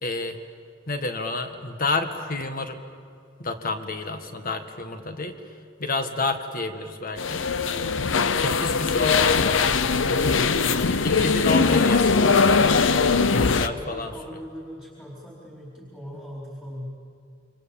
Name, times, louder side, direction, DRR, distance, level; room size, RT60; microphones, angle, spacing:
voice 1, 0.0-0.4 0.9-2.8 3.4-5.3 5.8-7.4 8.3-9.7 10.2-13.0 13.3-14.1, left 3 dB, 45° left, 7 dB, 1.9 m, -30 dB
sound 1, 7.2-13.7, left 4 dB, 80° left, 0.8 m, -21 dB
voice 2, 13.4-17.0, equal, 10° left, -3 dB, 4.3 m, -40 dB
28.0 x 25.0 x 7.2 m, 2.4 s
head